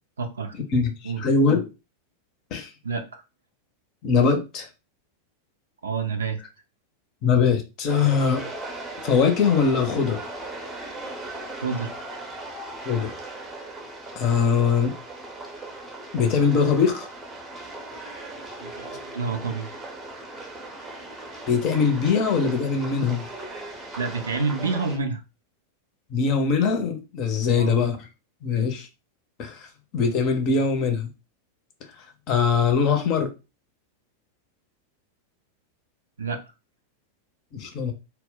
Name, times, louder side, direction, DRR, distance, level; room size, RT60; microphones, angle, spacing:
voice 1, 0.2-0.5 1.0-1.2 2.8-3.2 5.8-6.4 11.6-11.9 18.6-19.7 24.0-25.2 27.5-27.8 36.2-36.4, right 4 dB, 70° right, 0.5 m, -28 dB
voice 2, 0.7-1.7 2.5-2.7 4.0-4.7 7.2-8.4 9.0-10.2 12.9-13.1 14.2-15.0 16.1-17.1 21.5-23.2 26.1-28.0 28.4-28.9 29.4-29.7 29.9-31.1 32.3-33.3 37.5-37.9, left 5 dB, 40° left, 0.6 m, -22 dB
sound 1, 7.9-25.0, right 2 dB, 15° right, 0.7 m, -38 dB
2.1 x 2.0 x 3.8 m
figure-of-eight pair, 90°, 0 cm